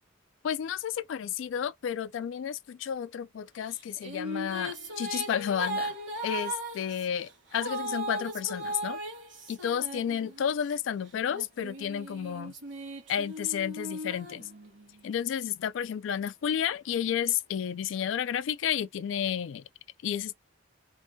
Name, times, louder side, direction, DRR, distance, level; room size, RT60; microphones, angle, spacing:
voice 1, 0.4-9.0 9.5-12.5 13.1-14.5 15.0-19.6 20.0-20.3, left 8 dB, 75° left, 0.3 m, -31 dB
sound 1, 3.7-10.7 11.3-15.1, right 1 dB, 80° right, 1.1 m, -38 dB
2.6 x 2.2 x 2.6 m
head